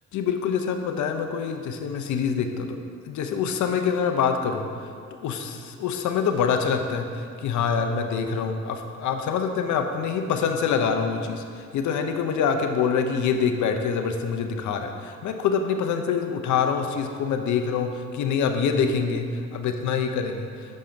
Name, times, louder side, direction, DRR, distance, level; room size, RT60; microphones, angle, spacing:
voice 1, 0.1-2.8 3.1-4.9 5.2-20.8, left 6 dB, 75° left, 6 dB, 0.7 m, -25 dB
6.4 x 5.4 x 4.4 m, 2.2 s
cardioid pair, 90°, 30 cm